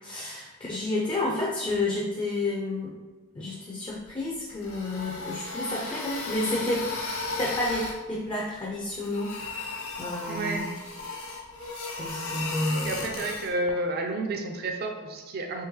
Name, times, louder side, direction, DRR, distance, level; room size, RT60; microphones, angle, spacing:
voice 1, 0.0-3.0 3.3-6.9 7.4-10.7 12.0-13.1, left 2 dB, 20° left, -3 dB, 0.4 m, -30 dB
sound 1, 4.5-8.0 8.9-13.5, left 3 dB, 80° left, 0.8 m, -35 dB
voice 2, 10.3-10.6 12.8-15.7, right 2 dB, 45° right, 3 dB, 0.4 m, -30 dB
3.6 x 3.0 x 3.0 m, 1.2 s
head